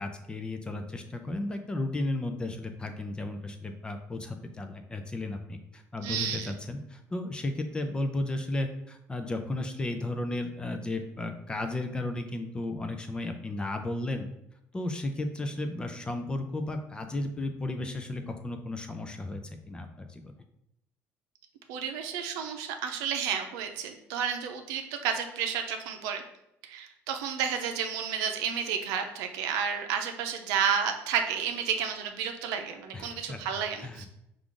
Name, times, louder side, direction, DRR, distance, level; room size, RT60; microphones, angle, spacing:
voice 1, 0.0-14.3 14.7-19.4 19.7-20.3 32.9-33.4 33.8-34.1, left 2 dB, 15° left, 6 dB, 0.5 m, -34 dB
voice 2, 6.0-6.5 21.7-26.2 26.6-34.1, right 7 dB, 90° right, 5 dB, 0.6 m, -31 dB
4.7 x 2.5 x 3.7 m, 0.81 s
cardioid pair, 120°, 6 cm